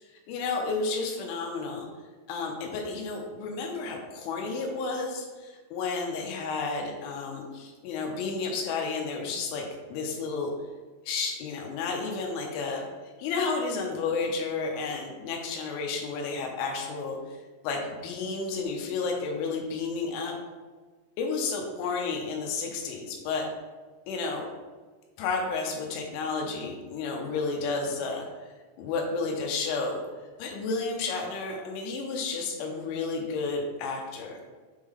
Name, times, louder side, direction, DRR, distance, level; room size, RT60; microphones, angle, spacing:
voice 1, 0.3-1.9 2.3-10.5 11.1-12.8 13.2-17.4 17.6-20.3 21.2-23.5 24.1-24.5 25.2-28.3 28.8-30.0 30.4-34.4, left 4 dB, 85° left, 1 dB, 3.2 m, -31 dB
8.0 x 3.7 x 3.3 m, 1.4 s
omnidirectional pair, 5.6 m